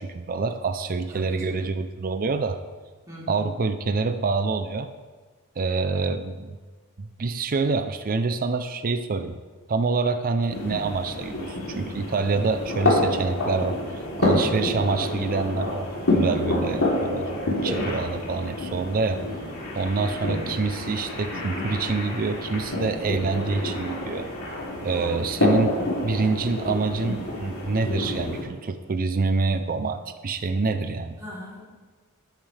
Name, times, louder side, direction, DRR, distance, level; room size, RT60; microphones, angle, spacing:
voice 1, 0.0-2.6 3.3-4.9 5.6-6.6 7.0-9.4 9.7-15.9 16.1-19.2 19.8-24.5 24.8-25.7 26.0-31.2, right 4 dB, 40° right, 9 dB, 0.5 m, -26 dB
voice 2, 1.1-1.7 3.1-3.5 16.4-16.8 20.2-20.6 24.9-25.3 31.2-31.6, equal, 15° right, -7 dB, 3.4 m, -39 dB
sound 1, 10.5-28.4, left 1 dB, 75° left, 3.2 m, -28 dB
13.0 x 9.2 x 3.4 m, 1.4 s
head